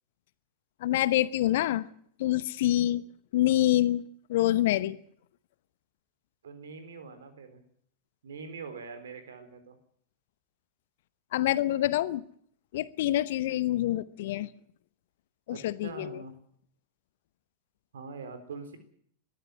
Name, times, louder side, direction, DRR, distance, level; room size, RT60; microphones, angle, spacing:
voice 1, 0.8-1.9 2.2-3.0 3.3-5.0 11.3-12.2 12.7-14.5 15.5-16.2, left 14 dB, 55° left, 17 dB, 0.9 m, -26 dB
voice 2, 6.4-7.6 8.2-9.8 15.5-16.4 17.9-18.8, right 4 dB, 65° right, 9 dB, 3.9 m, -43 dB
21.0 x 13.0 x 9.9 m, 0.64 s
figure-of-eight pair, 90°, 0 cm